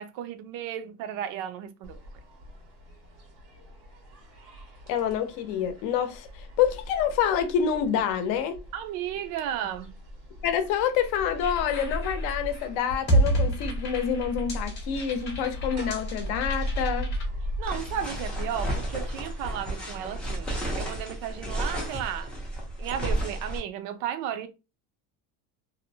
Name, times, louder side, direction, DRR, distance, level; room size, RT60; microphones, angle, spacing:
voice 1, 0.0-2.0 8.7-10.0 17.6-22.3 22.8-24.5, right 10 dB, 60° right, 0.5 m, -34 dB
sound 1, 1.8-21.7, equal, 90° right, 1.4 m, -38 dB
voice 2, 4.9-8.6 10.4-17.1, left 8 dB, 70° left, 0.6 m, -27 dB
sound 2, 11.4-17.2, right 1 dB, 30° left, 0.8 m, -29 dB
sound 3, 17.6-23.6, right 1 dB, 5° left, 0.3 m, -33 dB
2.7 x 2.0 x 2.6 m
cardioid pair, 165°, 38 cm